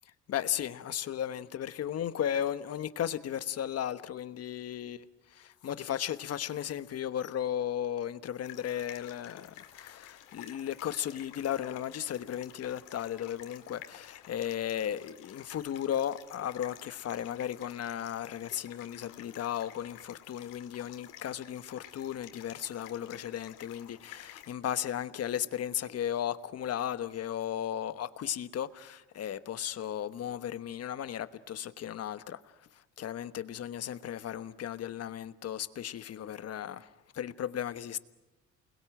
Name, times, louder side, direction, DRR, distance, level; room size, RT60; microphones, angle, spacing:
voice 1, 0.3-5.1 5.3-32.4 33.0-36.9 37.1-38.0, left 10 dB, 50° left, 1.2 m, -35 dB
sound 1, 8.4-24.5, left 12 dB, 90° left, 2.1 m, -52 dB
28.5 x 21.0 x 9.0 m
cardioid pair, 100°, 31 cm